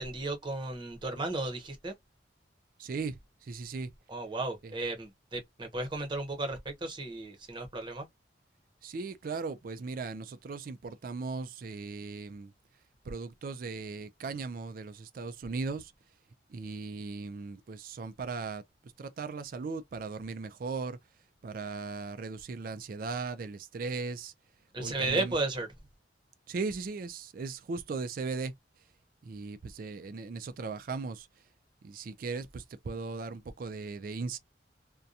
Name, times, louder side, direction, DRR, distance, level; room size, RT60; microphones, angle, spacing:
voice 1, 0.0-1.9 4.1-8.1 24.7-25.7, right 2 dB, 25° right, 0.8 m, -34 dB
voice 2, 2.8-3.9 4.6-4.8 8.8-12.5 13.0-15.9 16.5-21.0 21.4-24.3 24.8-25.4 26.5-28.8 29.2-31.4 31.8-34.4, right 4 dB, 50° right, 0.4 m, -38 dB
2.7 x 2.2 x 2.3 m
head